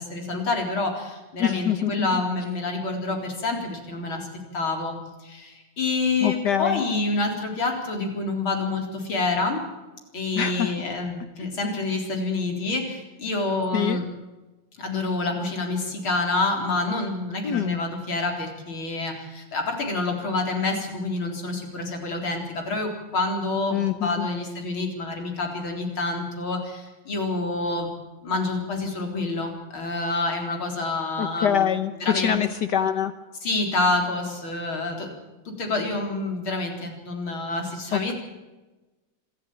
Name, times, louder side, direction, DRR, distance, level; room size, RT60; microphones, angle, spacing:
voice 1, 0.0-4.3 4.5-9.6 10.1-14.1 14.8-27.9 28.2-31.7 32.0-32.4 33.4-35.1 35.4-38.1, left 3 dB, 85° left, 2 dB, 4.8 m, -27 dB
voice 2, 1.4-2.2 6.2-6.8 10.4-10.7 13.7-14.0 17.4-17.8 23.7-24.3 31.2-33.1 37.9-38.1, left 9 dB, 60° left, 10 dB, 1.4 m, -25 dB
26.0 x 13.5 x 9.0 m, 1.1 s
omnidirectional pair, 2.2 m